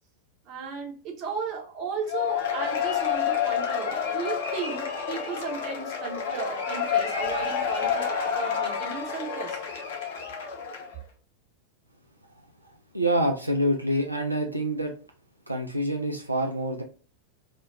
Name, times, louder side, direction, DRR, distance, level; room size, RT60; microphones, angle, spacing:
voice 1, 0.5-9.6, right 5 dB, 40° right, 0.8 m, -35 dB
Cheering / Applause / Crowd, 2.1-11.0, left 7 dB, 55° left, 0.6 m, -29 dB
voice 2, 12.9-14.9 15.5-16.8, right 1 dB, 85° right, 0.3 m, -26 dB
2.2 x 2.2 x 3.2 m
figure-of-eight pair, 90°, 0 cm